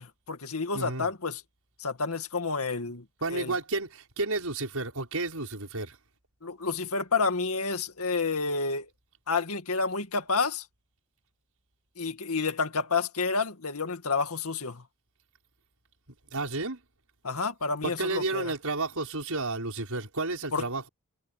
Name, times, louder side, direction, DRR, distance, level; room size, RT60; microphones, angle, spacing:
voice 1, 0.0-1.4 1.8-3.1 3.3-3.5 6.4-8.9 9.3-10.7 12.0-14.8 17.2-18.5 20.5-20.6, left 4 dB, 85° left, 2.1 m, -29 dB
voice 2, 0.7-1.1 3.2-6.0 16.3-16.8 17.8-20.9, right 2 dB, 80° right, 6.1 m, -31 dB
head